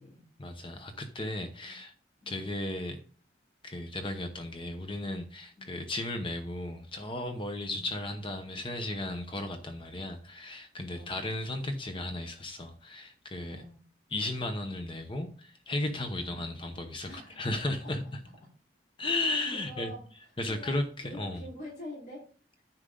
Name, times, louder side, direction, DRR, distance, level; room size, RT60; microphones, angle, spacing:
voice 1, 0.4-1.9 2.3-3.0 3.6-13.6 14.1-18.0 19.0-19.9 20.4-21.4, left 2 dB, 30° left, 6 dB, 0.9 m, -35 dB
voice 2, 10.9-11.2 13.5-13.8 16.1-16.3 17.0-17.5 17.8-17.9 19.5-20.0 20.5-22.2, left 1 dB, 55° left, -8 dB, 4.7 m, -46 dB
10.0 x 6.2 x 3.9 m, 0.42 s
head